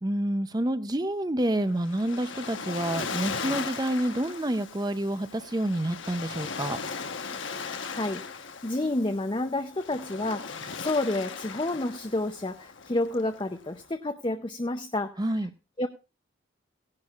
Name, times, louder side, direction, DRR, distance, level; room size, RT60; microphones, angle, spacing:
voice 1, 0.0-6.8 15.2-15.5, right 1 dB, 20° right, 12 dB, 0.6 m, -28 dB
Waves surf, 1.5-13.9, left 5 dB, 65° left, 1.1 m, -38 dB
voice 2, 7.9-8.2 8.6-15.1 15.8-15.9, left 2 dB, 25° left, 6 dB, 0.6 m, -29 dB
17.5 x 10.5 x 2.4 m, 0.28 s
head